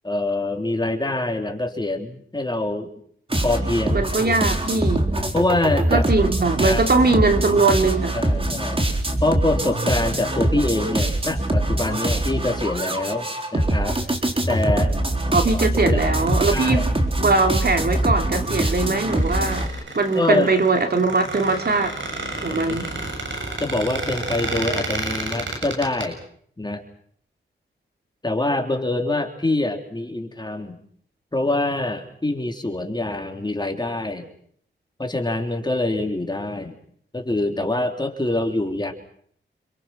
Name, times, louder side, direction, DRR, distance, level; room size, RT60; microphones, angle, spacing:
voice 1, 0.0-2.9 3.4-4.1 5.3-6.1 6.6-6.9 8.1-8.9 9.2-14.0 14.5-15.0 15.9-16.1 16.5-16.9 20.1-20.5 22.5-22.8 23.6-26.2 26.6-26.8 28.2-30.8 31.3-34.3 35.0-36.8 37.1-38.9, left 2 dB, 20° left, 3.8 m, -25 dB
sound 1, 3.3-19.7, right 1 dB, 25° right, 3.9 m, -23 dB
voice 2, 3.9-5.1 5.9-8.1 15.3-16.9 17.2-19.7 19.9-22.0 22.4-22.9, right 3 dB, 50° right, 2.8 m, -21 dB
Squeak, 18.8-26.0, right 2 dB, 70° right, 7.2 m, -31 dB
27.5 x 26.0 x 6.1 m
cardioid pair, 55°, 21 cm